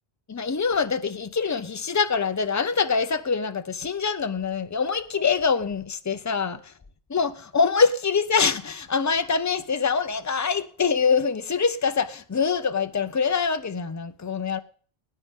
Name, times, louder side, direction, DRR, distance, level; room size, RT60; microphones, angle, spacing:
voice 1, 0.3-6.6 7.1-14.6, left 5 dB, 30° left, 0.3 m, -24 dB
19.0 x 9.5 x 3.6 m
omnidirectional pair, 1.1 m